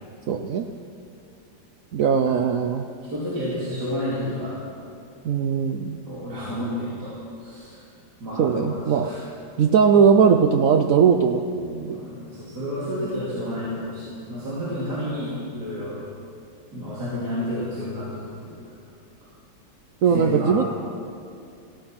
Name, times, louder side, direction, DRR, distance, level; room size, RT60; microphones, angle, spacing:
voice 1, 0.3-0.7 1.9-2.8 5.2-6.0 8.4-9.2 9.6-12.0 14.6-14.7 20.0-20.6, right 6 dB, 90° right, 6 dB, 0.7 m, -19 dB
voice 2, 3.1-4.6 6.1-7.8 8.2-9.2 11.8-16.0 16.7-18.5 20.1-20.6, equal, 55° right, -9 dB, 3.4 m, -30 dB
16.0 x 13.0 x 5.9 m, 2.5 s
omnidirectional pair, 2.1 m